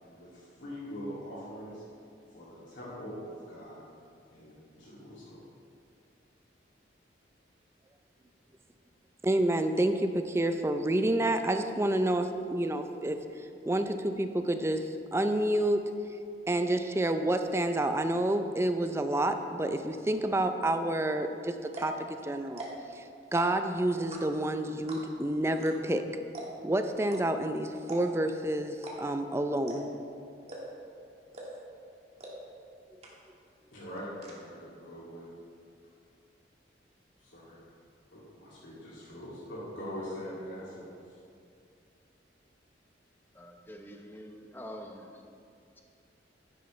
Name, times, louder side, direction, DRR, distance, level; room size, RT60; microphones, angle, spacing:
voice 1, 0.0-1.8 2.3-3.8 4.3-5.4 33.7-35.3 37.2-37.6 38.1-40.9, equal, 80° left, -9 dB, 2.4 m, -43 dB
voice 2, 9.2-13.2 13.7-15.8 16.5-22.7 22.9-23.0 23.3-26.1 26.6-29.9, right 1 dB, 15° right, 7 dB, 0.4 m, -29 dB
sound 1, 21.2-21.3 21.6-22.0 22.5-22.9 23.2-23.7 24.1-24.5 24.9-25.2 25.6-25.7 26.0-26.1 26.3-26.7 27.1-27.2 27.8-28.3 28.7-29.0 29.2-29.3 29.7-30.0 30.5-30.9 31.3-31.7 32.2-32.3 32.6-32.7 33.0-33.4 33.7-34.3, right 1 dB, 35° right, 1.7 m, -42 dB
voice 3, 43.3-45.3, equal, 10° left, 2 dB, 0.8 m, -46 dB
11.5 x 10.5 x 3.2 m, 2.4 s
head